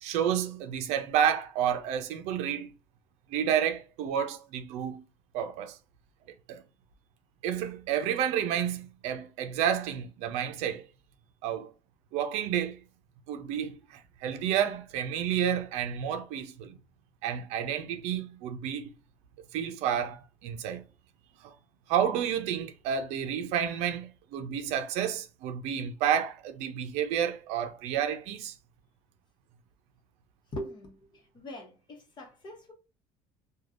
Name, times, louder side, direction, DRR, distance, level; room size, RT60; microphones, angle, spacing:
voice 1, 0.0-2.7 3.3-5.0 5.3-5.8 6.5-6.6 7.4-10.8 11.4-11.7 12.1-12.8 13.3-16.7 17.2-18.9 19.5-20.8 21.4-21.5 21.9-28.5, right 9 dB, 75° right, 0.5 m, -30 dB
voice 2, 30.5-32.7, left 1 dB, 40° left, 1.1 m, -42 dB
3.3 x 2.3 x 2.5 m
supercardioid pair, 100°, 12 cm